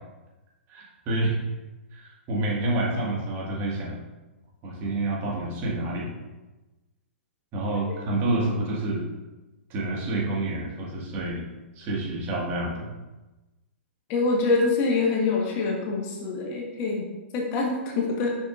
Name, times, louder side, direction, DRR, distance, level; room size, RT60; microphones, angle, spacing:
voice 1, 0.7-1.4 1.9-3.9 4.6-6.1 7.5-9.0 9.7-11.4 11.8-12.9, right 2 dB, 30° right, -3 dB, 1.8 m, -28 dB
voice 2, 14.1-18.3, left 3 dB, 35° left, -1 dB, 1.3 m, -25 dB
6.6 x 6.2 x 2.5 m, 1.1 s
figure-of-eight pair, 115°, 7 cm